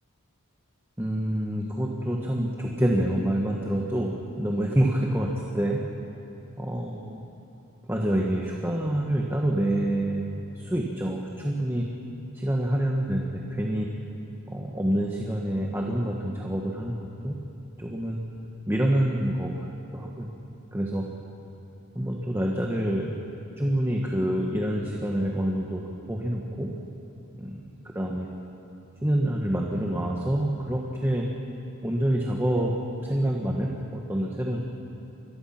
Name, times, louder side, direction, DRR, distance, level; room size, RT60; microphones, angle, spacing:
voice 1, 1.0-5.8 6.6-7.2 7.9-11.8 12.3-13.9 14.5-17.3 17.8-18.2 18.7-20.3 20.7-21.1 21.9-23.1 23.6-25.8 26.1-26.7 27.4-27.7 27.9-28.3 29.0-31.3 31.8-32.7 33.0-34.6, right 1 dB, 10° right, -1 dB, 1.5 m, -27 dB
28.0 x 22.0 x 6.0 m, 3.0 s
head